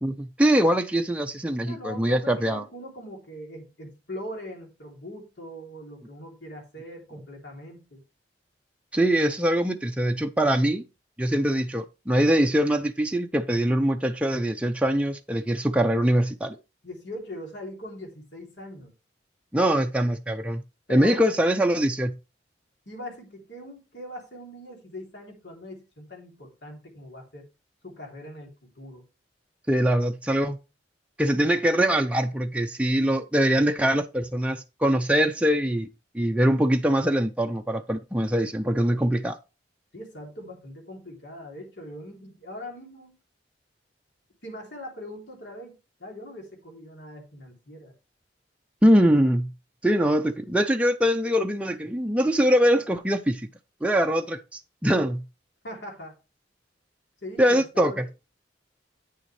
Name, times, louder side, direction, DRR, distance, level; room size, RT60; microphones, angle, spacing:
voice 1, 0.0-2.6 8.9-10.8 11.2-16.6 19.5-20.6 20.9-22.1 29.7-30.6 31.2-35.9 36.1-39.4 48.8-49.5 49.8-53.5 53.8-55.2 57.4-58.1, equal, 5° right, 0.5 m, -23 dB
voice 2, 1.7-8.0 16.8-18.9 20.9-21.4 22.8-27.5 27.8-29.1 39.9-43.2 44.4-47.9 55.6-56.2 57.2-58.1, left 1 dB, 70° left, 3.1 m, -41 dB
9.0 x 6.8 x 3.3 m
head